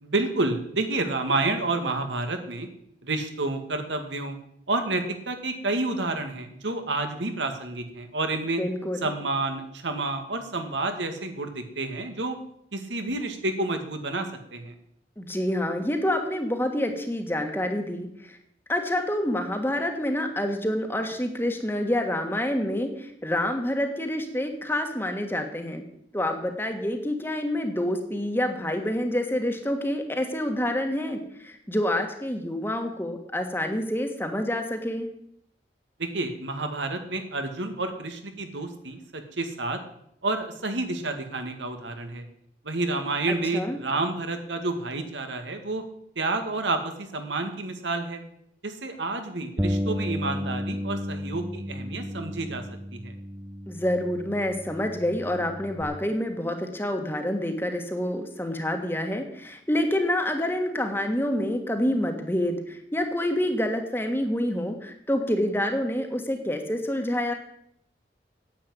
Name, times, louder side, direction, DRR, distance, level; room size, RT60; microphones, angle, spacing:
voice 1, 0.0-2.7 3.0-4.4 4.7-8.6 9.0-12.4 12.7-14.7 36.0-39.8 40.2-42.3 42.6-45.8 46.2-48.2 48.6-52.6 52.9-53.1, right 2 dB, 90° right, 6 dB, 2.1 m, -29 dB
voice 2, 8.6-9.1 15.2-18.4 18.7-25.8 26.1-35.1 43.3-43.8 53.7-67.3, left 1 dB, 10° left, 5 dB, 1.5 m, -27 dB
Bass guitar, 49.6-55.8, equal, 10° right, 0.7 m, -33 dB
10.0 x 8.5 x 9.6 m, 0.72 s
head